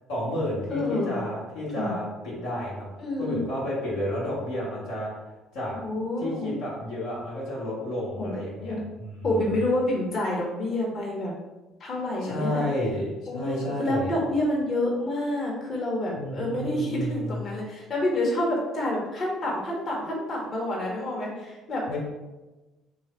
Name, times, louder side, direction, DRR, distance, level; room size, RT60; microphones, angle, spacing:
voice 1, 0.1-2.9 3.2-5.1 5.5-5.7 6.2-9.5 12.2-14.1 16.1-17.5 21.9-22.0, left 1 dB, 75° left, -6 dB, 1.3 m, -31 dB
voice 2, 0.7-1.2 1.8-1.9 3.0-3.4 5.8-6.5 8.2-8.8 9.2-11.3 11.8-12.6 13.3-22.0, left 1 dB, 45° left, -3 dB, 1.2 m, -28 dB
3.2 x 3.1 x 4.3 m, 1.1 s
hypercardioid pair, 55°, 0 cm